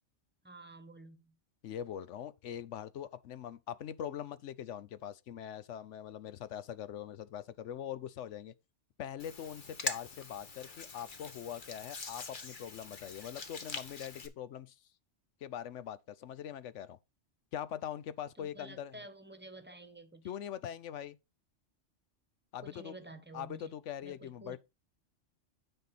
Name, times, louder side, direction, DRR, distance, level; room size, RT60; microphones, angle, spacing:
voice 1, 0.4-1.4 18.3-20.4 22.6-23.7 24.0-24.6, right 2 dB, 10° right, 1.1 m, -51 dB
voice 2, 1.6-8.5 9.0-14.8 15.4-17.0 17.5-18.9 20.2-21.2 22.5-22.9 23.3-24.6, left 10 dB, 75° left, 1.0 m, -42 dB
Hands, 9.2-14.3, left 4 dB, 45° left, 1.3 m, -43 dB
9.0 x 5.6 x 4.1 m
omnidirectional pair, 1.2 m